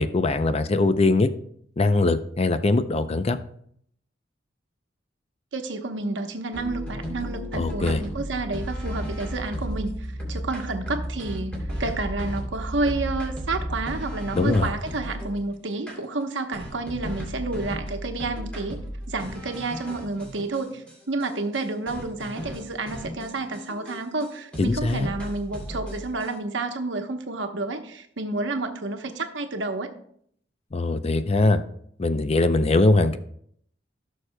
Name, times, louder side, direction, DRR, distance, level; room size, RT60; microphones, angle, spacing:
voice 1, 0.0-1.3 1.8-3.4 7.5-8.0 14.3-14.7 24.6-25.1 30.7-31.6 32.0-33.2, left 2 dB, 35° left, 11 dB, 0.5 m, -21 dB
voice 2, 5.5-18.8 19.1-29.9, right 3 dB, 85° right, 5 dB, 1.0 m, -30 dB
sound 1, 6.5-15.4 15.9-16.0 16.5-20.9 21.2-21.3 21.5-21.6 21.9-24.3 24.5-26.3, equal, 5° left, 2.8 m, -34 dB
16.0 x 6.4 x 2.2 m, 0.66 s
head